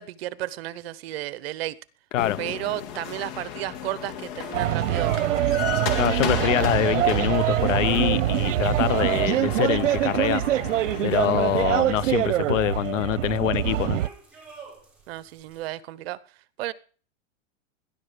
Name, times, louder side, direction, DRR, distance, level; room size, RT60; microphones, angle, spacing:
voice 1, 0.0-1.8 2.4-5.6 15.1-16.2 16.6-16.7, right 15 dB, 50° right, 1.0 m, -33 dB
sound 1, 2.2-11.7, left 9 dB, 45° left, 2.1 m, -35 dB
sound 2, 4.2-15.7, right 4 dB, 5° right, 5.8 m, -50 dB
sound 3, 4.5-14.1, right 13 dB, 75° right, 0.8 m, -24 dB
voice 2, 6.0-10.4 11.0-14.0, left 13 dB, 80° left, 0.8 m, -25 dB
18.5 x 11.0 x 5.2 m
supercardioid pair, 150°, 37 cm